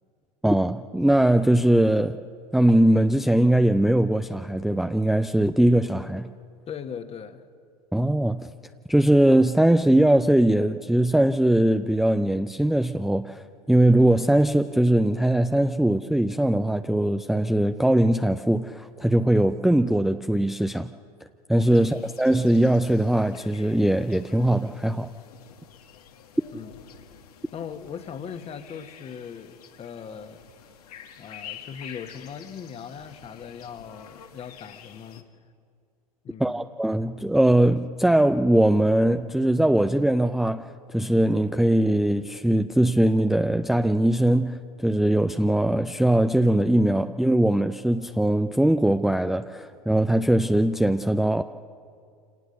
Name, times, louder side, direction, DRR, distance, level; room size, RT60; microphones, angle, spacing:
voice 1, 0.4-2.2 2.5-6.3 7.9-8.5 8.9-20.9 21.5-25.1 36.4-51.4, right 1 dB, ahead, 8 dB, 0.5 m, -21 dB
voice 2, 6.7-7.4 21.7-22.1 26.5-26.7 27.5-30.4 31.2-35.3 36.2-36.7, left 7 dB, 30° left, 9 dB, 1.5 m, -39 dB
sound 1, 21.6-35.2, left 8 dB, 70° left, 1.7 m, -48 dB
27.0 x 18.5 x 6.8 m, 2.3 s
hypercardioid pair, 90°, 20 cm